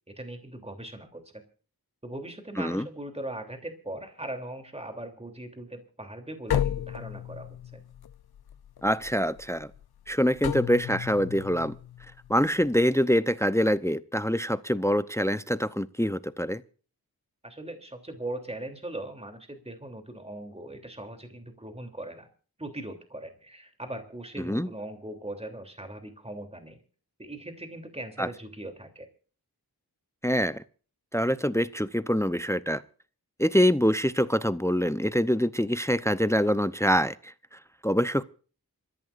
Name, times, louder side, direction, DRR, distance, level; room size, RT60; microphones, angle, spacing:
voice 1, 0.2-1.4 2.0-7.8 17.4-22.3 22.6-26.8 27.2-29.1, right 1 dB, 15° right, 3.1 m, -40 dB
sound 1, 6.5-12.8, left 10 dB, 75° left, 0.6 m, -34 dB
voice 2, 8.8-9.7 10.1-11.8 12.3-16.6 24.4-24.7 28.2-28.3 30.2-30.6 31.1-32.8 33.4-38.2, equal, 5° left, 0.7 m, -25 dB
27.0 x 14.5 x 2.5 m
wide cardioid pair, 55°, 38 cm